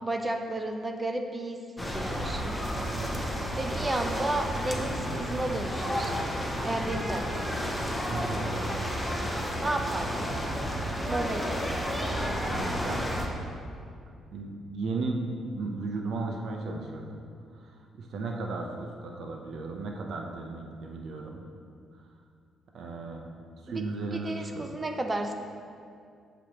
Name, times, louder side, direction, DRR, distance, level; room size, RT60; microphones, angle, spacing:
voice 1, 0.0-1.6 1.9-2.6 3.5-6.2 6.6-7.6 9.6-10.3 11.1-11.7 23.7-23.8 24.1-25.3, right 2 dB, 25° right, 4 dB, 0.5 m, -32 dB
sound 1, 1.8-13.3, equal, 5° left, 0.8 m, -31 dB
voice 2, 2.9-3.3 8.1-8.5 12.8-13.1 14.3-17.2 17.5-21.4 22.0-22.1 22.7-23.3 23.6-24.8, right 3 dB, 65° right, 1 dB, 0.6 m, -35 dB
7.6 x 5.1 x 2.9 m, 2.3 s
cardioid pair, 90°, 0 cm